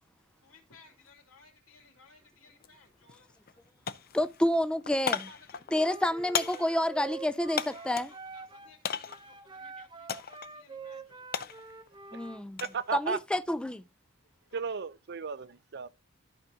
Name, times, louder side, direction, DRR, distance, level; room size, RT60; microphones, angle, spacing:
voice 1, 0.4-3.3 5.0-5.6 7.7-11.2 14.5-14.6, left 4 dB, 90° left, 2.9 m, -59 dB
sound 1, 2.6-2.7 3.1-3.6 3.9-8.2 8.8-9.3 10.1-10.5 10.8-12.8 13.2-13.6, left 8 dB, 50° left, 0.6 m, -36 dB
voice 2, 4.1-5.3 5.7-8.1 12.1-12.6 12.9-13.8, left 1 dB, 5° left, 0.4 m, -29 dB
Wind instrument woodwind instrument, 5.7-8.8 9.1-12.4, right 4 dB, 20° right, 0.7 m, -46 dB
voice 3, 12.7-13.2 14.5-15.9, right 5 dB, 55° right, 0.6 m, -34 dB
13.5 x 4.9 x 2.8 m
head